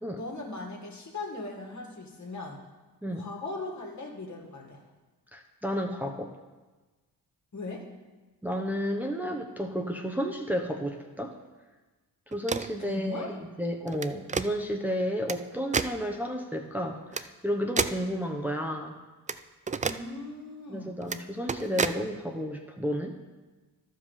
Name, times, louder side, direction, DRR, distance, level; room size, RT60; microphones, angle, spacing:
voice 1, 0.2-2.6 3.1-4.8 7.5-7.9 12.8-13.3 19.8-20.9, left 3 dB, 50° left, 1 dB, 2.0 m, -39 dB
voice 2, 5.3-6.3 8.4-11.4 12.3-13.3 13.6-18.9 20.7-23.1, equal, 5° right, 0 dB, 0.9 m, -32 dB
sound 1, 12.3-12.8 13.9-14.5 15.3-15.4 15.7-15.9 17.1-17.2 17.8-18.0 19.3-19.4 19.7-20.0 21.0-21.2 21.5-22.0, right 5 dB, 20° right, 0.4 m, -29 dB
12.0 x 5.2 x 5.5 m, 1.2 s
supercardioid pair, 60°, 36 cm